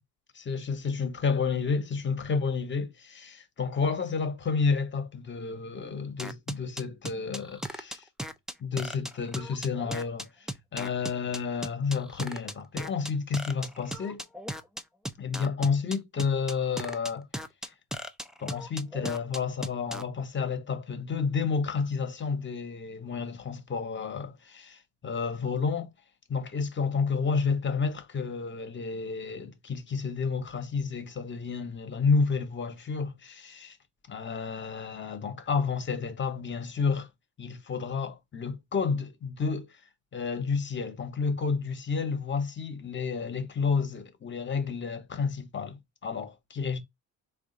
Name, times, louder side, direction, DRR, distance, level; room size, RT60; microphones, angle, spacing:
voice 1, 0.3-8.1 8.6-10.3 10.7-14.3 15.2-17.3 17.6-17.7 18.4-25.9 26.3-33.8 34.1-37.1 37.4-39.8 40.1-46.8, left 5 dB, 30° left, 0.9 m, -30 dB
sound 1, 6.2-20.0, equal, ahead, 0.4 m, -37 dB
3.6 x 2.4 x 3.8 m
cardioid pair, 100°, 36 cm